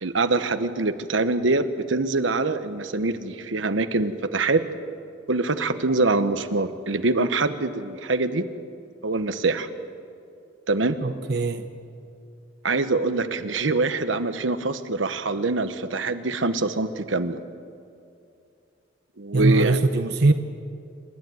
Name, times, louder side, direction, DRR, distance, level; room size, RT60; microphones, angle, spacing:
voice 1, 0.0-4.6 5.3-8.4 9.0-9.7 10.7-11.0 12.6-17.4 19.2-19.8, right 3 dB, 80° right, 10 dB, 1.1 m, -24 dB
voice 2, 11.0-11.7 19.3-20.3, right 3 dB, 55° right, 8 dB, 0.8 m, -21 dB
28.0 x 12.0 x 9.2 m, 2.5 s
head